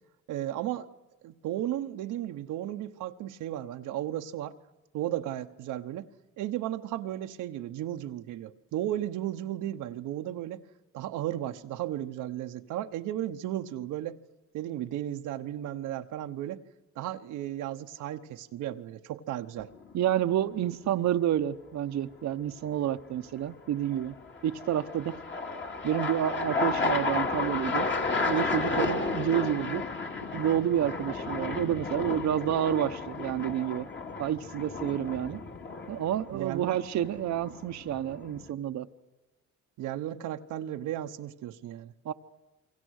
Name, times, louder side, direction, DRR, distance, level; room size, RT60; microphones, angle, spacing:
voice 1, 0.3-0.9 1.2-4.5 4.9-6.1 6.4-10.6 10.9-14.2 14.5-16.6 17.0-19.7 28.7-28.9 34.9-35.0 36.3-36.8 39.8-41.9, right 12 dB, 90° right, 6 dB, 1.0 m, -35 dB
sound 1, 19.6-20.1 23.9-38.5, left 3 dB, 40° left, 2.4 m, -33 dB
voice 2, 19.9-24.1 24.4-25.2 25.8-27.9 28.3-29.8 30.3-33.9 34.2-35.4 35.9-38.9 42.0-42.1, right 11 dB, 65° right, 9 dB, 0.9 m, -29 dB
28.0 x 23.5 x 6.5 m, 1.0 s
cardioid pair, 90°, 30 cm